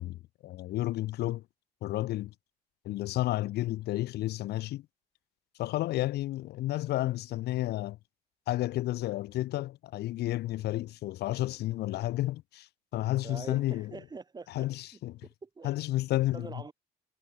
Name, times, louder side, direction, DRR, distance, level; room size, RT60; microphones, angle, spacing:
voice 1, 0.0-1.4 1.8-2.3 2.9-4.9 5.6-8.0 8.5-12.7 12.9-14.0 14.5-15.2 15.6-16.6, left 16 dB, 75° left, 1.8 m, -31 dB
voice 2, 13.2-14.7 15.4-15.7 16.3-16.7, right 4 dB, 25° right, 2.8 m, -44 dB
cardioid pair, 110°, 17 cm